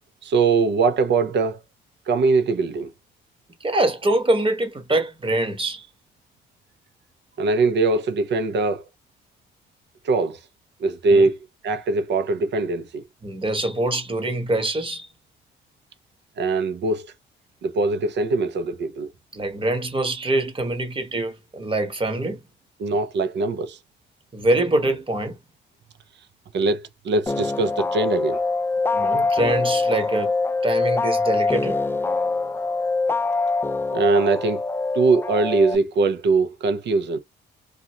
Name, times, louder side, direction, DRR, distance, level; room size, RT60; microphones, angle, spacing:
voice 1, 0.2-1.6 2.1-2.9 7.4-8.8 10.0-10.4 10.8-11.4 11.6-13.0 16.4-17.1 17.6-19.1 22.8-23.8 26.5-28.4 33.9-34.6 34.9-37.2, right 3 dB, 60° right, 0.7 m, -21 dB
voice 2, 3.6-5.9 11.1-11.2 13.2-15.1 19.3-22.4 24.3-25.4 28.9-30.3 30.6-31.8, right 1 dB, 25° right, 1.2 m, -24 dB
sound 1, 27.3-35.8, left 3 dB, 10° left, 0.3 m, -24 dB
2.5 x 2.4 x 2.9 m
cardioid pair, 90°, 20 cm